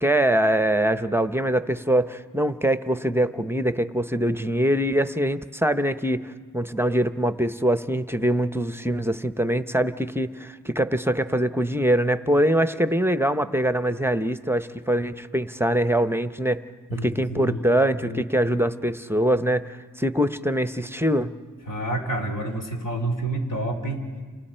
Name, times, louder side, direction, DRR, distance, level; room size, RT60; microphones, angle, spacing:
voice 1, 0.0-16.6 16.9-21.3, right 1 dB, 5° right, 11 dB, 0.7 m, -23 dB
voice 2, 16.9-18.2 21.7-24.2, right 1 dB, 70° left, 3 dB, 3.4 m, -29 dB
29.5 x 28.0 x 4.4 m, 1.5 s
wide cardioid pair, 60°, 34 cm